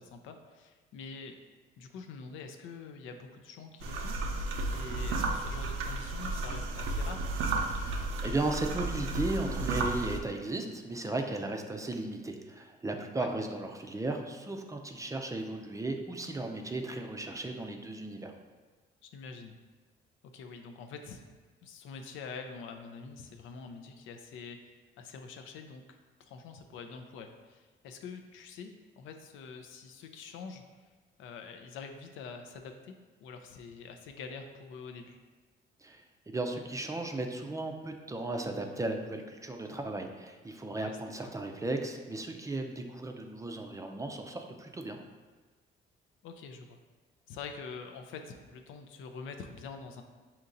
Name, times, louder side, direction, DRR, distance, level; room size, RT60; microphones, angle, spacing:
voice 1, 0.0-1.4 1.8-4.1 4.7-7.3 13.2-13.3 19.0-19.6 20.3-21.2 21.6-25.8 26.2-30.6 31.2-32.9 33.2-35.2 40.8-41.3 46.2-46.8 47.3-50.0, left 5 dB, 85° left, 5 dB, 0.4 m, -45 dB
sound 1, 3.8-10.2, right 2 dB, 85° right, 0.5 m, -33 dB
voice 2, 7.7-18.3 35.8-45.0, right 2 dB, 15° right, 4 dB, 0.4 m, -36 dB
5.2 x 2.8 x 2.5 m, 1.3 s
cardioid pair, 90°, 20 cm